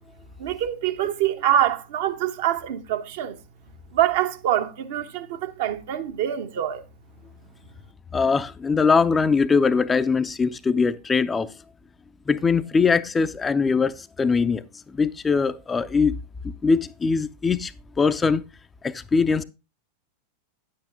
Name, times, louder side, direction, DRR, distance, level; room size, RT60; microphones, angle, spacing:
voice 1, 0.4-3.4 3.9-6.8, right 11 dB, 55° right, 1.0 m, -25 dB
voice 2, 8.1-11.5 12.3-14.6 14.9-16.2 16.6-17.7 18.0-18.4 18.8-19.4, left 5 dB, 15° left, 0.5 m, -21 dB
10.0 x 8.4 x 3.6 m
figure-of-eight pair, 90°, 0 cm